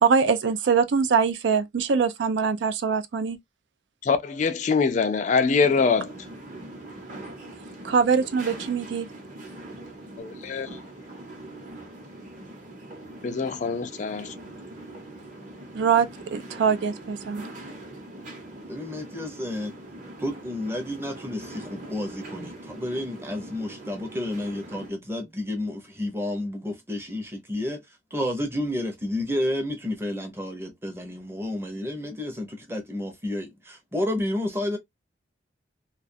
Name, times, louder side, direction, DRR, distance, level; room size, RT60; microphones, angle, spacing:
voice 1, 0.0-3.4 7.8-9.1 15.7-17.4, right 6 dB, 80° right, 0.4 m, -23 dB
voice 2, 4.0-6.1 10.2-10.7 13.2-14.3, left 5 dB, 40° left, 0.3 m, -24 dB
sound 1, 5.6-24.9, right 1 dB, 45° right, 0.8 m, -42 dB
voice 3, 18.7-19.7 20.2-27.8 28.1-34.8, left 1 dB, 15° right, 0.6 m, -31 dB
2.3 x 2.3 x 2.5 m
head